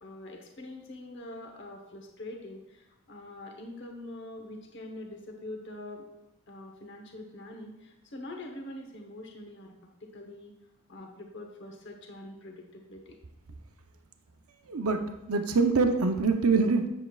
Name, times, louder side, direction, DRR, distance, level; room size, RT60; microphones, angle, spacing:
voice 1, 0.0-6.1 6.5-9.7 10.0-10.5 10.9-13.2, left 1 dB, 50° left, 2 dB, 1.0 m, -44 dB
voice 2, 14.7-16.9, right 4 dB, 80° right, 6 dB, 0.7 m, -25 dB
7.8 x 7.5 x 2.4 m, 0.91 s
head